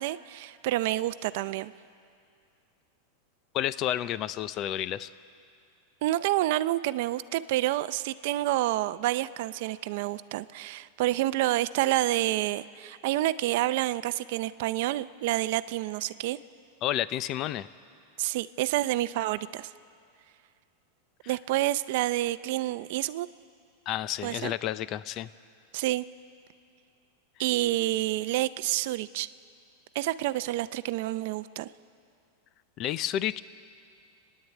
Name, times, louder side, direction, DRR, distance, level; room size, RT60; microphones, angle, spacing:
voice 1, 0.0-1.7 6.0-16.4 18.2-19.7 21.3-23.3 24.2-24.5 25.7-26.1 27.4-29.3 29.9-31.7, right 15 dB, 60° right, 15 dB, 0.5 m, -28 dB
voice 2, 3.5-5.1 16.8-17.7 21.2-21.3 23.9-25.3 32.8-33.4, left 12 dB, 40° left, 16 dB, 0.5 m, -30 dB
29.5 x 11.0 x 8.3 m, 2.4 s
supercardioid pair, 140°, 0 cm